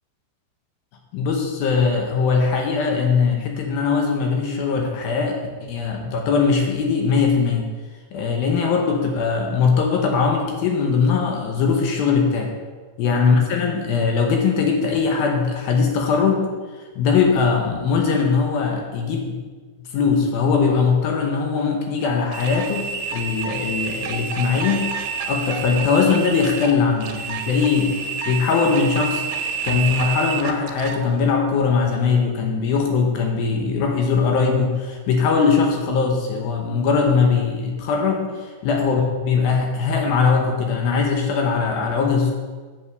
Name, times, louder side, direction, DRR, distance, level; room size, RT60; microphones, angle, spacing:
voice 1, 1.1-7.7 8.1-12.5 13.0-16.5 17.0-19.4 19.8-22.8 23.1-24.9 25.3-27.9 28.3-42.3, left 5 dB, 70° left, 2 dB, 2.6 m, -20 dB
sound 1, 22.3-31.0, right 6 dB, 80° right, 3.0 m, -29 dB
7.7 x 7.4 x 6.7 m, 1.4 s
omnidirectional pair, 5.0 m